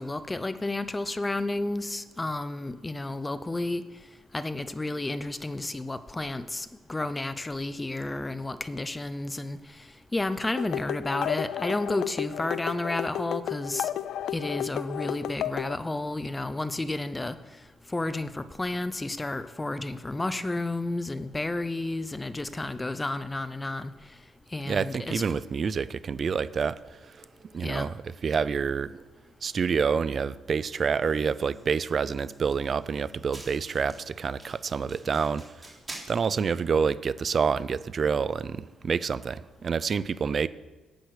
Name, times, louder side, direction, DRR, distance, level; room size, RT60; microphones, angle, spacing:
voice 1, 0.0-3.8 4.3-9.6 10.1-13.9 14.3-17.4 17.9-23.9 24.5-25.2 27.6-27.9, left 2 dB, 15° left, 13 dB, 0.6 m, -31 dB
sound 1, 10.6-15.7, left 11 dB, 75° left, 0.3 m, -33 dB
voice 2, 24.6-27.3 27.5-28.9 29.4-35.4 36.1-40.5, right 6 dB, 45° right, 18 dB, 0.4 m, -28 dB
sound 2, 30.7-36.6, right 2 dB, 20° right, 3.3 m, -49 dB
10.5 x 8.3 x 6.4 m, 1.3 s
cardioid pair, 90°, 0 cm